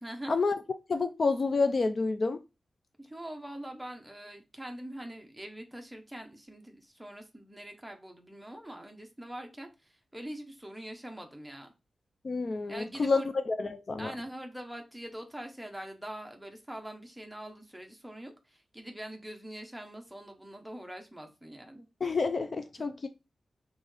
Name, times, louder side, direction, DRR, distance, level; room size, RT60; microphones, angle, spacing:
voice 1, 0.0-0.3 3.1-11.7 12.7-13.3 14.0-21.9, right 1 dB, 5° right, 0.8 m, -43 dB
voice 2, 0.9-2.4 12.2-14.1 22.0-23.1, left 4 dB, 40° left, 0.3 m, -29 dB
4.0 x 3.5 x 3.3 m
wide cardioid pair, 155°, 0 cm